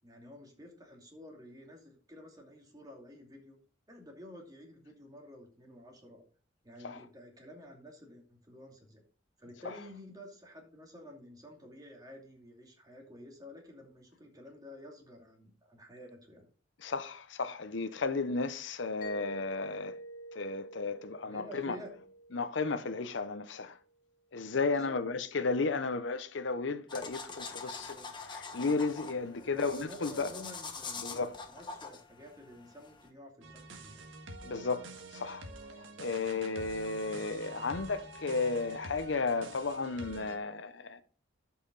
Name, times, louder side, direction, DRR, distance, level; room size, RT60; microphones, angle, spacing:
voice 1, 0.0-3.6 3.9-6.2 6.6-9.0 9.4-16.4 21.2-21.9 24.7-25.0 27.8-28.1 29.2-31.2 31.5-34.1, left 1 dB, 20° right, 2.6 m, -51 dB
voice 2, 16.8-20.0 20.3-21.8 22.3-23.8 24.3-28.0 28.5-30.3 31.0-31.4 34.4-35.5 35.8-41.0, left 4 dB, 65° left, 0.7 m, -34 dB
Mallet percussion, 19.0-23.6, right 1 dB, 45° left, 3.6 m, -48 dB
sound 1, 26.9-33.1, left 4 dB, 25° left, 1.3 m, -44 dB
sound 2, 33.4-40.4, right 2 dB, 90° right, 1.6 m, -47 dB
12.5 x 5.7 x 3.9 m
head